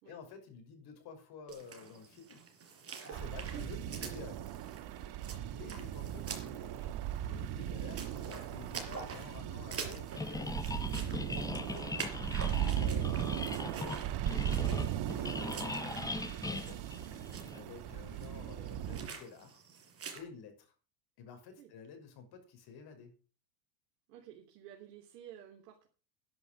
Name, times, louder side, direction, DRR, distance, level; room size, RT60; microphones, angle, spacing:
voice 1, 0.0-2.5 3.0-4.4 5.5-10.6 11.5-14.1 15.1-16.8 17.5-19.6 20.1-20.7 21.2-23.1, left 6 dB, 50° left, 6 dB, 6.0 m, -51 dB
sound 1, 1.5-20.2, right 5 dB, 30° right, 4.8 m, -47 dB
sound 2, 3.1-19.1, right 11 dB, 50° right, 1.8 m, -38 dB
sound 3, 10.2-17.6, left 3 dB, 5° left, 0.8 m, -40 dB
voice 2, 24.1-25.9, right 10 dB, 70° right, 1 dB, 3.2 m, -53 dB
11.0 x 11.0 x 6.5 m, 0.37 s
hypercardioid pair, 100°, 49 cm